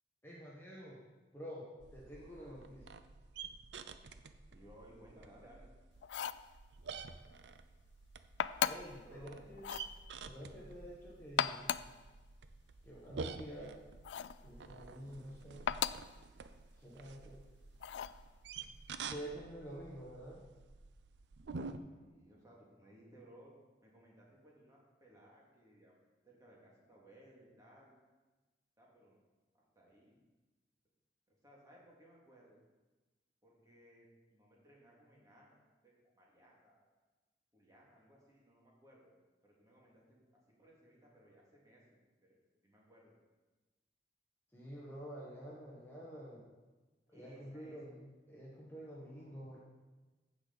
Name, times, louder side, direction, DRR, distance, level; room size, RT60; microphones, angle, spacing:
voice 1, 0.2-1.0 1.3-1.6 1.9-2.9 8.6-9.6 10.2-11.7 12.8-13.8 14.4-15.7 16.7-17.5 19.1-20.4 44.5-46.4 47.1-49.6, equal, 15° left, -6 dB, 1.3 m, -49 dB
sound 1, 1.8-21.8, right 4 dB, 75° right, 0.5 m, -50 dB
voice 2, 4.5-5.7 8.9-9.3 21.7-23.5 23.8-25.9 26.2-27.9 28.8-29.2 29.5-30.2 31.3-32.6 33.4-36.9 37.5-39.2 39.4-40.2 40.5-43.1 47.1-48.0, right 1 dB, 20° right, -4 dB, 2.4 m, -62 dB
sound 2, 6.0-6.5 8.4-9.0 9.6-9.9 11.2-12.0 14.0-14.4 15.7-16.1 17.8-18.2, left 9 dB, 80° left, 0.3 m, -36 dB
14.5 x 5.1 x 4.1 m, 1.2 s
head